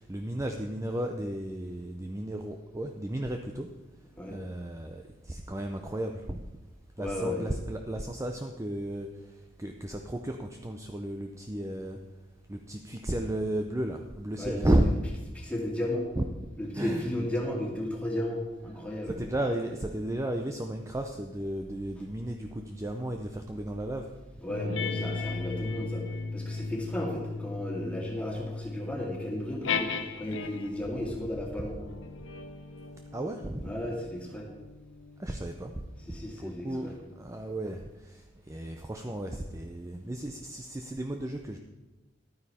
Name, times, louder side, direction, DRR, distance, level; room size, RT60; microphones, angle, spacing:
voice 1, 0.0-3.7 4.3-6.4 7.0-9.1 9.6-12.0 12.5-14.9 16.1-16.3 16.7-17.3 19.1-24.1 33.1-33.8 35.2-35.7 36.4-41.6, right 1 dB, 15° right, 3 dB, 0.5 m, -33 dB
voice 2, 7.0-7.5 14.4-14.6 15.3-16.1 16.6-19.2 24.4-26.1 26.3-31.7 33.6-34.5 36.1-36.9, left 1 dB, 5° left, -2 dB, 2.1 m, -34 dB
sound 1, 24.5-30.9 31.6-36.6, left 4 dB, 80° left, 0.9 m, -37 dB
12.0 x 9.4 x 4.2 m, 1.1 s
head